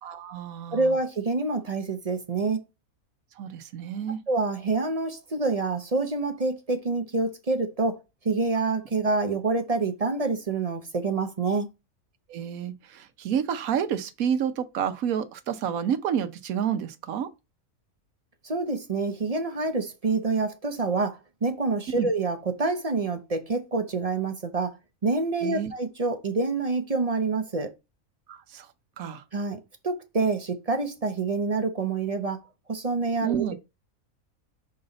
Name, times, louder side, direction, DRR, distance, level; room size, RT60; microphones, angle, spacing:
voice 1, 0.0-1.0 3.4-4.2 12.3-17.3 22.0-22.1 25.4-25.7 28.3-28.7 29.0-29.2 33.2-33.6, right 8 dB, 75° right, 1.2 m, -29 dB
voice 2, 0.7-2.6 4.3-8.0 8.2-11.7 18.4-24.7 25.0-27.7 29.3-32.4 32.7-33.6, right 3 dB, 35° right, 0.7 m, -27 dB
5.5 x 4.3 x 3.9 m
omnidirectional pair, 1.5 m